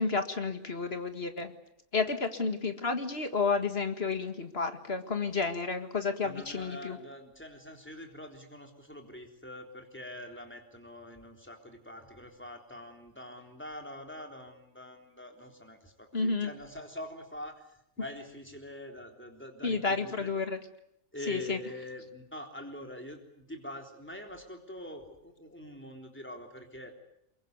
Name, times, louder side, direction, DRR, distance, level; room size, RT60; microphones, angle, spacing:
voice 1, 0.0-1.5 1.9-7.0 16.1-16.5 19.6-20.6 21.3-21.6, left 4 dB, 45° left, 8 dB, 2.0 m, -31 dB
voice 2, 6.2-20.3 21.1-26.9, left 1 dB, 10° left, 3 dB, 3.7 m, -45 dB
23.5 x 22.5 x 9.5 m, 0.76 s
omnidirectional pair, 1.5 m